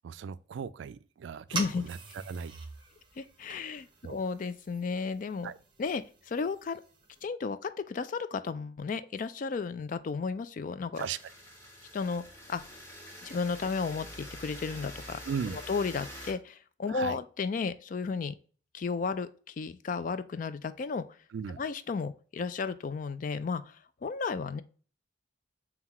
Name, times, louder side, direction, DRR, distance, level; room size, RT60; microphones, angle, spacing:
voice 1, 0.0-2.5 4.0-4.2 5.4-5.6 11.0-11.2 15.3-15.6 16.9-17.2 21.3-21.6, right 7 dB, 70° right, 0.3 m, -37 dB
voice 2, 1.5-1.8 3.2-5.5 5.8-6.8 7.2-11.1 11.9-12.2 12.5-12.6 13.2-15.2 15.5-18.4 18.7-21.0 21.6-23.6 24.0-24.6, left 4 dB, 45° left, 0.3 m, -33 dB
sound 1, 1.5-7.2, right 4 dB, 25° right, 0.7 m, -44 dB
sound 2, 10.9-16.3, equal, 15° left, 1.4 m, -46 dB
5.6 x 2.3 x 2.9 m
head